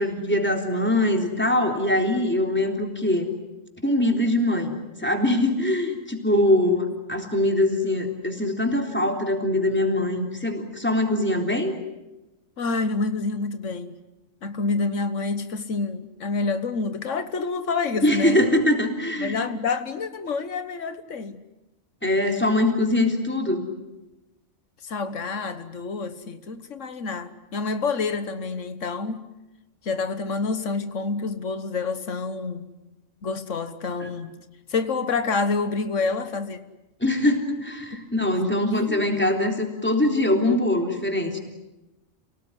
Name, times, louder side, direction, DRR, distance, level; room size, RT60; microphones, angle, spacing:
voice 1, 0.0-3.3 3.8-11.8 18.0-19.4 22.0-23.6 34.0-34.1 37.0-41.4, left 1 dB, 10° left, 3 dB, 3.7 m, -23 dB
voice 2, 12.6-14.0 14.4-18.4 19.2-21.4 24.8-29.2 29.8-32.7 33.2-34.3 34.7-36.6 38.7-39.1, left 4 dB, 90° left, 11 dB, 1.7 m, -28 dB
30.0 x 18.5 x 9.9 m, 1.0 s
omnidirectional pair, 1.3 m